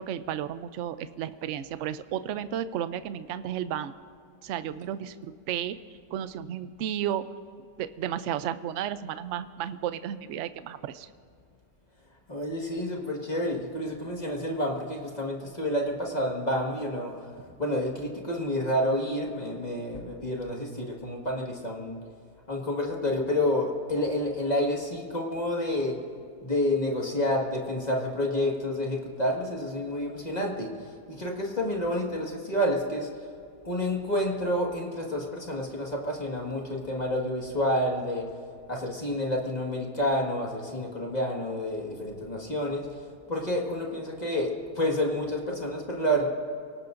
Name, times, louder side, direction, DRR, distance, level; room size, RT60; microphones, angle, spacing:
voice 1, 0.0-3.9 4.4-5.8 6.1-7.3 7.8-11.1, right 10 dB, 65° right, 12 dB, 0.7 m, -33 dB
voice 2, 12.3-17.3 17.6-22.0 22.5-26.0 26.4-30.7 31.1-33.1 33.6-38.3 38.7-42.9 43.3-46.3, left 1 dB, 25° left, -1 dB, 1.8 m, -29 dB
29.0 x 18.0 x 2.6 m, 2.3 s
omnidirectional pair, 1.8 m